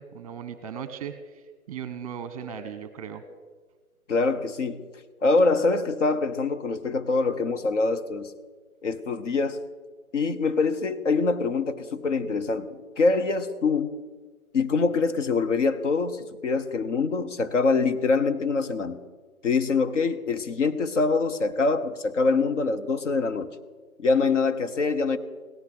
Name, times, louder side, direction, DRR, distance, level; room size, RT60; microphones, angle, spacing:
voice 1, 0.0-3.2, right 7 dB, 25° right, 11 dB, 1.1 m, -37 dB
voice 2, 4.1-4.8 5.2-8.3 8.8-9.6 10.1-13.9 14.5-19.0 19.4-23.5 24.0-25.2, left 4 dB, 55° left, 10 dB, 1.2 m, -24 dB
17.5 x 13.0 x 6.1 m, 1.4 s
figure-of-eight pair, 145°, 43 cm